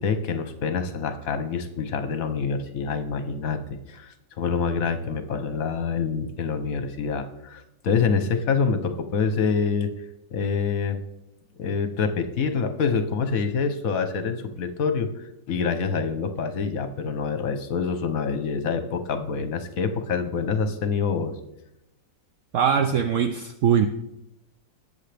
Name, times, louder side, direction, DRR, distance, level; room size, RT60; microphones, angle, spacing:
voice 1, 0.0-9.9 10.3-11.0 11.6-15.1 15.5-21.3, left 5 dB, 55° left, 9 dB, 1.2 m, -26 dB
voice 2, 22.5-23.9, right 8 dB, 75° right, 8 dB, 0.7 m, -21 dB
19.5 x 7.2 x 3.4 m, 0.87 s
omnidirectional pair, 1.9 m